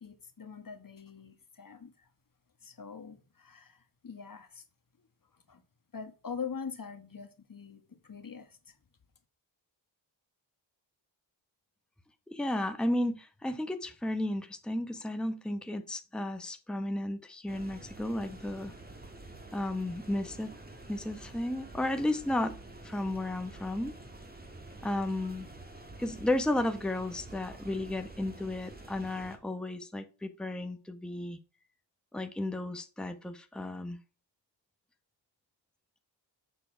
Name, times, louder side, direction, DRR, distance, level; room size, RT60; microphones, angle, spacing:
voice 1, 0.0-2.1 2.6-4.6 5.5-5.6 5.9-8.7, left 6 dB, 45° left, 1.3 m, -43 dB
voice 2, 12.3-18.7 19.5-20.5 20.9-22.5 22.8-23.9 24.8-25.5 26.0-31.4 32.1-34.0, left 1 dB, ahead, 0.9 m, -33 dB
sound 1, 17.5-29.4, right 2 dB, 20° right, 1.9 m, -48 dB
6.9 x 6.3 x 4.4 m
cardioid pair, 50°, 46 cm